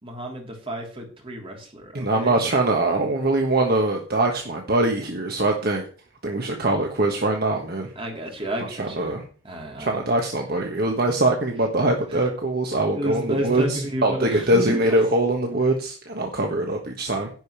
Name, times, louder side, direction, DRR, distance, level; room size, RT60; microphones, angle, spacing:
voice 1, 0.0-2.3 8.0-9.1 9.4-9.9 12.9-14.8, right 1 dB, 25° right, 1 dB, 3.3 m, -31 dB
voice 2, 1.9-5.9 6.2-7.9 8.6-9.2 9.8-17.3, right 2 dB, 50° right, 2 dB, 1.4 m, -23 dB
11.0 x 5.3 x 8.2 m, 0.40 s
head